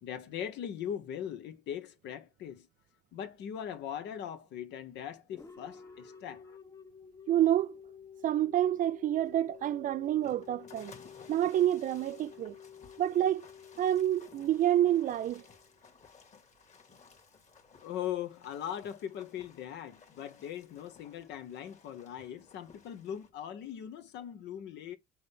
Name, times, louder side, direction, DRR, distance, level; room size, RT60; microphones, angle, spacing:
voice 1, 0.0-2.7 3.1-6.6 17.8-25.0, left 9 dB, 65° left, 1.2 m, -40 dB
sound 1, 5.3-16.0, left 7 dB, 15° left, 0.9 m, -52 dB
voice 2, 7.3-7.8 8.2-10.9 11.3-12.6 13.0-13.5 13.8-15.4, right 12 dB, 45° right, 0.4 m, -28 dB
sound 2, 9.2-23.3, left 5 dB, 35° left, 2.0 m, -58 dB
6.4 x 4.2 x 3.6 m
hypercardioid pair, 65°, 20 cm